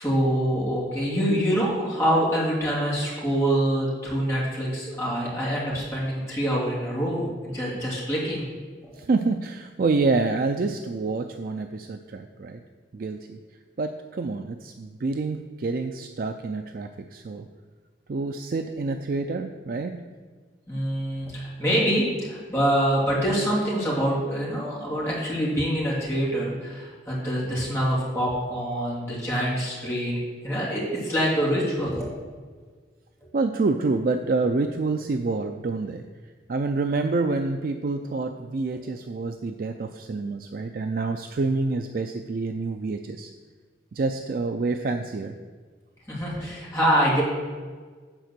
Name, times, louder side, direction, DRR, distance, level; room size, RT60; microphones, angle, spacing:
voice 1, 0.0-8.5 8.8-8.9 20.7-30.2 30.4-32.1 46.1-47.2, equal, 15° left, -7 dB, 2.8 m, -25 dB
voice 2, 9.0-12.6 12.9-13.4 13.8-17.5 18.1-20.0 33.3-36.0 36.5-43.3 43.9-45.3, right 3 dB, 50° right, 6 dB, 0.4 m, -27 dB
9.2 x 4.4 x 6.7 m, 1.5 s
head